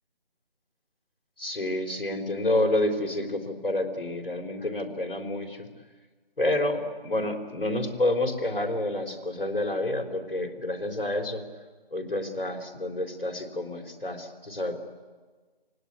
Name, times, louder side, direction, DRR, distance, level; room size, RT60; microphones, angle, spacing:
voice 1, 1.4-5.7 6.4-11.4 11.9-14.8, left 1 dB, 75° left, 4 dB, 4.0 m, -29 dB
28.5 x 19.5 x 9.6 m, 1.4 s
figure-of-eight pair, 155°, 29 cm